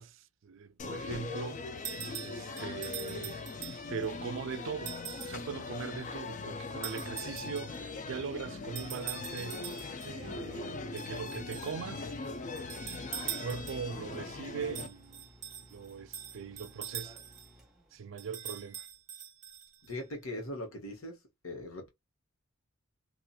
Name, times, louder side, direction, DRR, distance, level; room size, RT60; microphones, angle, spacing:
voice 1, 0.0-12.1 13.2-15.3 15.7-17.2 17.9-18.8, right 6 dB, 60° right, 0.4 m, -41 dB
sound 1, 0.8-14.9, left 3 dB, 35° left, 0.4 m, -41 dB
sound 2, 1.8-4.1 4.9-5.4 6.8-7.8 8.7-10.1 11.0-11.8 12.6-14.0 14.7-17.5 18.2-19.9, right 10 dB, 35° right, 0.7 m, -43 dB
sound 3, 2.6-19.0, equal, ahead, 0.8 m, -59 dB
voice 2, 19.8-21.2 21.4-21.9, left 1 dB, 75° left, 1.2 m, -40 dB
2.8 x 2.4 x 2.3 m
head